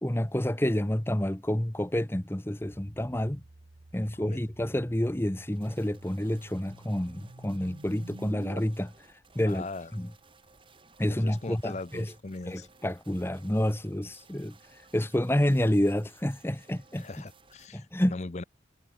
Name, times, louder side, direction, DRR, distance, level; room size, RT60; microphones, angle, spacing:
voice 1, 0.0-3.4 3.9-8.9 9.3-9.7 9.9-10.1 11.0-12.1 12.5-14.6 14.9-17.1 17.7-18.2, left 1 dB, 15° left, 0.9 m, -29 dB
sound 1, 2.6-8.6, right 2 dB, 65° right, 1.1 m, -50 dB
voice 2, 4.0-4.4 9.5-9.9 11.1-12.7 17.0-18.4, left 3 dB, 40° left, 0.6 m, -40 dB
sound 2, 5.5-17.7, right 4 dB, 30° right, 3.5 m, -59 dB
head